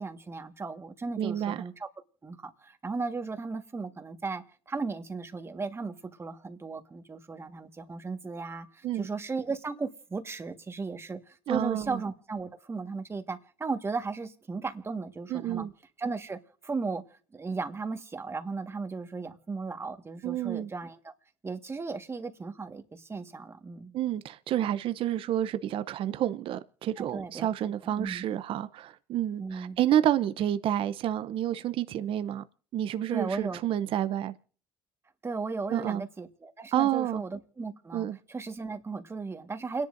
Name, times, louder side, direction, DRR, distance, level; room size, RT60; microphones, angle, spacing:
voice 1, 0.0-1.9 2.2-15.7 16.0-17.0 17.3-21.1 21.4-23.9 27.0-28.2 29.4-29.8 33.1-33.7 35.2-39.9, right 4 dB, 25° right, 1.5 m, -36 dB
voice 2, 1.2-1.6 8.8-9.1 11.5-12.0 15.3-15.7 20.2-20.7 23.9-32.4 32.7-34.3 35.7-36.0 36.7-37.2 37.9-38.2, right 11 dB, 55° right, 0.6 m, -29 dB
29.0 x 10.5 x 2.6 m
supercardioid pair, 80°, 11 cm